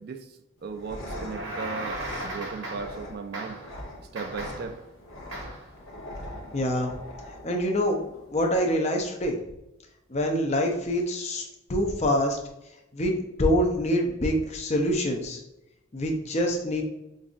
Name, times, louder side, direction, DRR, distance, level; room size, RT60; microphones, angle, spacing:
voice 1, 0.0-3.6 4.1-4.8, right 5 dB, 50° right, 0.3 m, -37 dB
sound 1, 0.6-8.6, left 1 dB, 85° left, 0.9 m, -42 dB
sound 2, 1.1-3.0 3.3-3.8 4.2-4.8 5.3-5.7, right 1 dB, 70° right, 1.2 m, -36 dB
voice 2, 6.5-7.0 7.4-8.0 8.3-9.4 10.1-12.4 12.9-15.4 15.9-16.8, equal, 35° left, 0.6 m, -25 dB
5.3 x 2.5 x 2.5 m
head